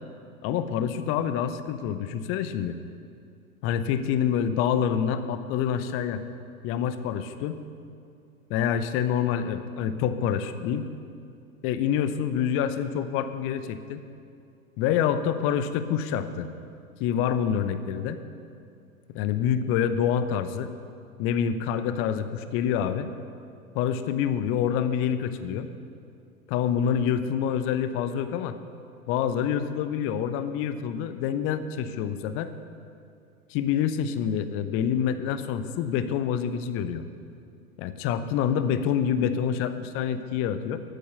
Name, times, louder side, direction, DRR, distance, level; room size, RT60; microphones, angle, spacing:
voice 1, 0.4-2.8 3.6-6.2 6.6-7.6 8.5-10.9 11.6-14.0 14.8-16.5 17.0-18.2 19.1-20.7 21.2-23.1 23.7-25.7 26.5-28.6 29.1-32.5 33.5-37.1 37.8-40.8, left 8 dB, 30° left, 11 dB, 0.7 m, -27 dB
12.5 x 8.5 x 6.8 m, 2.4 s
figure-of-eight pair, 95°, 43 cm